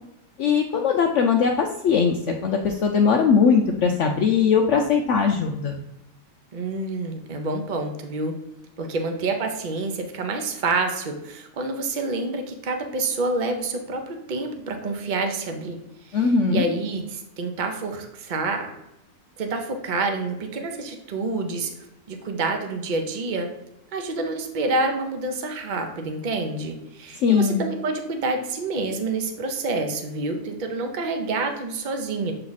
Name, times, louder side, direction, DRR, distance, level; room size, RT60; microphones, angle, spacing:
voice 1, 0.4-5.8 16.1-16.6 27.2-27.6, left 6 dB, 80° left, 3 dB, 0.6 m, -20 dB
voice 2, 6.5-8.4 8.8-15.8 16.0-18.7 19.4-21.7 22.1-23.5 23.9-32.3, right 3 dB, 55° right, 4 dB, 0.5 m, -28 dB
7.3 x 3.3 x 3.9 m, 0.88 s
omnidirectional pair, 1.8 m